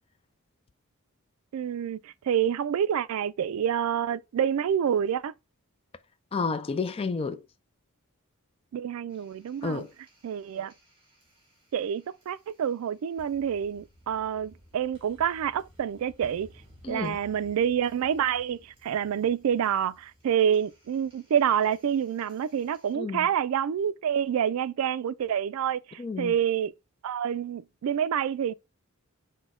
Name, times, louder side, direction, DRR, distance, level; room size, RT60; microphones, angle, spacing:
voice 1, 1.5-5.3 8.7-9.8 10.2-10.7 11.7-16.5 16.9-26.7 27.0-28.5, right 8 dB, 70° right, 0.3 m, -27 dB
voice 2, 6.3-7.4 9.6-9.9 16.8-17.2 22.9-23.3 26.0-26.3, left 4 dB, 25° left, 0.3 m, -30 dB
sound 1, 9.1-22.9, equal, 25° right, 1.9 m, -58 dB
6.1 x 2.1 x 3.6 m
head